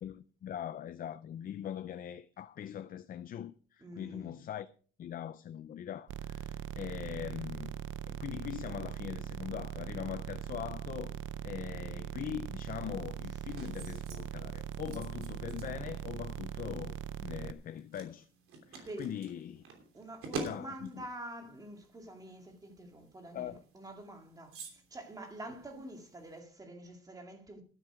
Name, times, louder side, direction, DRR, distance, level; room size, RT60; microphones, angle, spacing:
voice 1, 0.0-4.7 5.0-7.8 8.1-11.2 11.4-18.3 18.7-19.6 20.3-21.1 23.3-23.6, left 10 dB, 45° left, 0.5 m, -41 dB
voice 2, 3.8-4.3 18.8-19.1 19.9-27.6, right 1 dB, 15° right, 2.2 m, -47 dB
sound 1, 6.1-17.5, right 10 dB, 65° right, 0.6 m, -41 dB
sound 2, 12.6-26.4, right 3 dB, 80° right, 3.1 m, -49 dB
12.0 x 9.2 x 5.0 m
cardioid pair, 170°, 21 cm